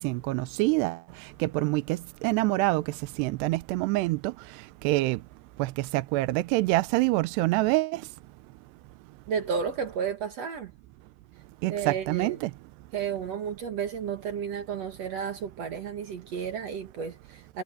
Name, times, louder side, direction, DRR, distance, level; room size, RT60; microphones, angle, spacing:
voice 1, 0.0-4.3 4.8-5.2 5.6-8.0 11.6-12.5, right 20 dB, 80° right, 2.5 m, -26 dB
voice 2, 9.3-10.7 11.7-12.4 12.9-17.6, right 7 dB, 65° right, 1.6 m, -32 dB
omnidirectional pair, 5.4 m